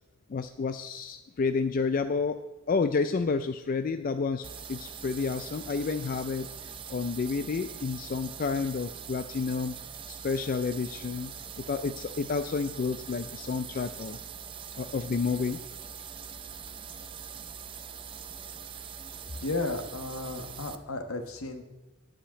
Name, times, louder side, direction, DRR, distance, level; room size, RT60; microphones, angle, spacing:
voice 1, 0.3-2.4 2.7-6.5 6.9-9.7 10.1-11.3 11.6-14.2 14.8-15.6, left 4 dB, 40° left, 9 dB, 0.3 m, -30 dB
sound 1, 4.4-20.8, right 7 dB, 25° right, 0.4 m, -43 dB
voice 2, 19.4-21.6, left 2 dB, 70° left, 6 dB, 1.2 m, -34 dB
10.0 x 5.1 x 8.2 m, 1.1 s
head